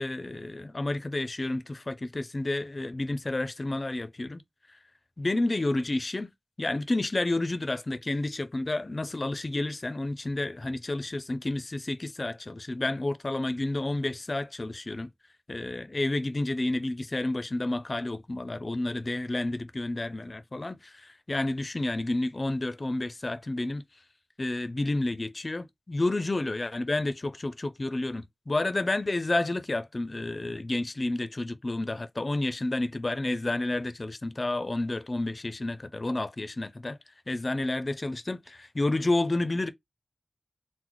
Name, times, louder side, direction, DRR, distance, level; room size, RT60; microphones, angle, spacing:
voice 1, 0.0-4.4 5.2-6.3 6.6-15.1 15.5-23.8 24.4-37.0 37.3-39.7, left 2 dB, 40° left, 0.5 m, -30 dB
3.9 x 2.1 x 3.0 m
wide cardioid pair, 80°, 0 cm